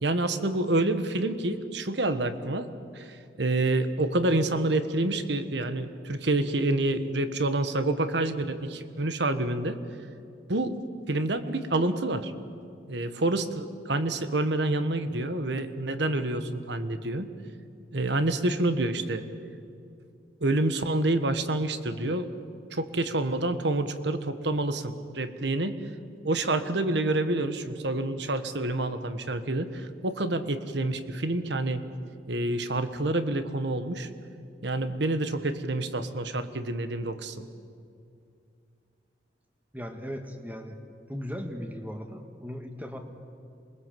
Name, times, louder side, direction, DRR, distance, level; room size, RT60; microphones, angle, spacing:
voice 1, 0.0-2.7 2.9-9.8 10.5-10.8 11.1-12.3 12.9-17.3 17.9-19.2 20.4-22.3 22.7-25.8 26.2-31.8 32.3-34.1 34.6-37.4, right 2 dB, 75° right, 10 dB, 1.4 m, -28 dB
voice 2, 39.7-40.8 41.1-43.0, equal, 10° right, 5 dB, 1.7 m, -37 dB
27.5 x 21.0 x 7.7 m, 2.5 s
head